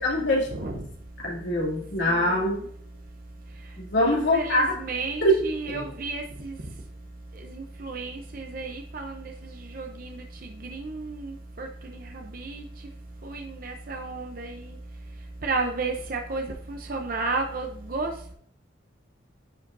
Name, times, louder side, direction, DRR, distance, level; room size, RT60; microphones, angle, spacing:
voice 1, 0.0-0.5 1.2-2.6 3.8-4.7 5.2-5.3 5.7-5.8, left 1 dB, 80° left, -4 dB, 2.8 m, -23 dB
voice 2, 2.0-2.5 4.0-6.5 7.5-9.3 9.7-10.2 10.6-11.7 12.3-12.6 13.2-14.5 15.4-18.1, right 3 dB, 50° right, 3 dB, 0.7 m, -32 dB
10.0 x 4.9 x 2.6 m, 0.62 s
head